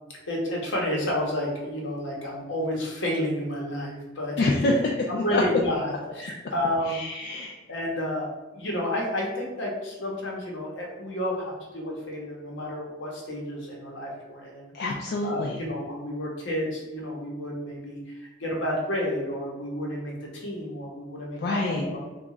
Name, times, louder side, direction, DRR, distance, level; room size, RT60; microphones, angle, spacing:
voice 1, 0.3-4.5 5.1-7.0 7.7-8.3 8.5-14.7 15.2-20.1 20.4-22.0, left 1 dB, 75° left, -2 dB, 0.9 m, -30 dB
voice 2, 4.4-5.4 6.8-7.6 14.7-15.6 21.4-21.9, left 2 dB, 55° left, -1 dB, 0.3 m, -26 dB
3.0 x 2.3 x 3.6 m, 1.1 s
head